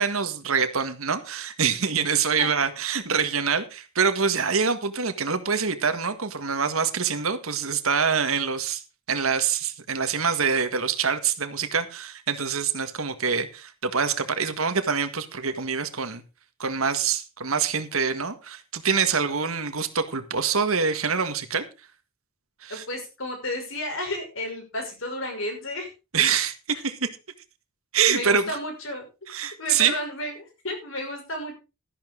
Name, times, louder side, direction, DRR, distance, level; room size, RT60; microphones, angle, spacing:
voice 1, 0.0-8.8 9.1-16.2 16.6-21.6 22.6-22.8 26.1-27.1 27.9-28.4 29.3-29.9, right 6 dB, 75° right, 1.6 m, -25 dB
voice 2, 22.7-25.9 28.1-29.1 29.6-31.6, left 1 dB, 65° left, 5.8 m, -32 dB
13.5 x 11.0 x 3.8 m
head